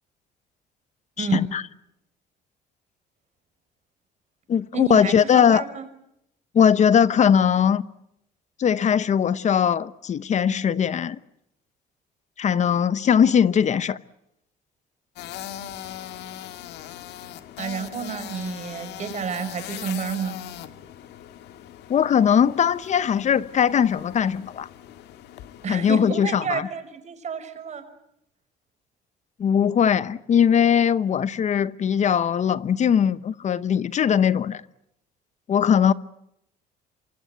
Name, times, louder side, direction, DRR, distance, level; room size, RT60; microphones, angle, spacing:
voice 1, 1.2-1.6 4.5-5.6 6.5-7.8 8.6-11.2 12.4-14.0 21.9-24.7 25.7-26.7 29.4-34.6 35.5-35.9, left 8 dB, 45° left, 1.0 m, -20 dB
voice 2, 4.7-5.8 17.6-20.4 25.6-27.8, right 6 dB, 45° right, 5.7 m, -30 dB
sound 1, 15.2-26.1, left 11 dB, 80° left, 1.9 m, -40 dB
26.5 x 24.5 x 8.0 m
cardioid pair, 110°, 17 cm